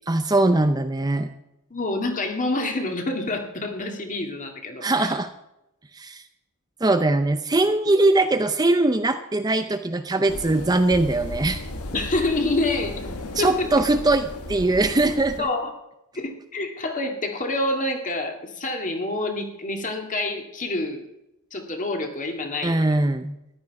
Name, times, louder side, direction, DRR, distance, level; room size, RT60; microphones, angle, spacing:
voice 1, 0.1-1.3 4.8-5.3 5.9-6.2 6.8-11.6 13.4-15.5 22.6-23.3, right 2 dB, 20° right, 8 dB, 0.6 m, -21 dB
voice 2, 1.7-5.2 11.9-13.1 13.4-13.7 15.4-15.7 16.2-21.0 21.5-22.7, left 2 dB, 35° left, 3 dB, 2.0 m, -27 dB
sound 1, 10.3-15.4, left 1 dB, 90° left, 1.6 m, -35 dB
14.5 x 11.0 x 4.7 m, 0.88 s
head